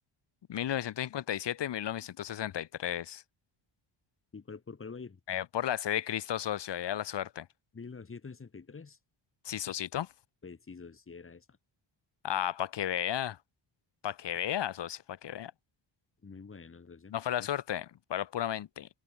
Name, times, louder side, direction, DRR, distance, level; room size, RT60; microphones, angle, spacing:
voice 1, 0.5-3.2 5.3-7.5 9.4-10.1 12.2-13.4 14.0-15.5 17.1-18.9, left 11 dB, 60° left, 1.5 m, -34 dB
voice 2, 4.3-5.2 7.7-9.0 10.4-11.6 16.2-17.1, left 5 dB, 25° left, 4.3 m, -46 dB
wide cardioid pair, 180°, 47 cm